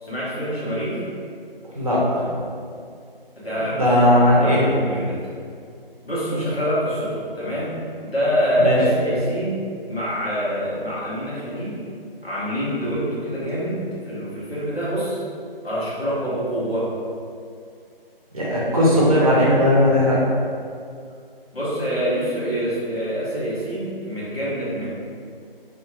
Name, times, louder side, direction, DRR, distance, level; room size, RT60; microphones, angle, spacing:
voice 1, 0.0-1.0 3.4-5.2 6.0-7.7 8.0-9.6 9.9-11.8 12.2-15.2 15.6-16.9 21.5-24.9, equal, 85° left, -9 dB, 1.5 m, -25 dB
voice 2, 1.7-2.3 3.7-4.6 8.6-8.8 18.3-20.2, left 1 dB, 35° right, -6 dB, 0.7 m, -17 dB
2.9 x 2.8 x 2.6 m, 2.3 s
figure-of-eight pair, 155°, 29 cm